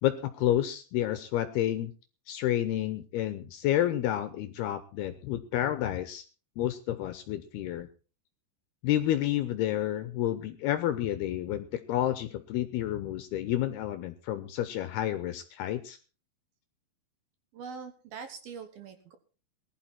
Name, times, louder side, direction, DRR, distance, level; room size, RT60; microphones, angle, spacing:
voice 1, 0.0-1.9 2.3-6.2 6.6-7.9 8.8-16.0, left 12 dB, 80° left, 11 dB, 2.4 m, -30 dB
voice 2, 17.5-19.2, right 6 dB, 65° right, 8 dB, 2.5 m, -43 dB
19.0 x 11.5 x 4.4 m, 0.36 s
omnidirectional pair, 5.4 m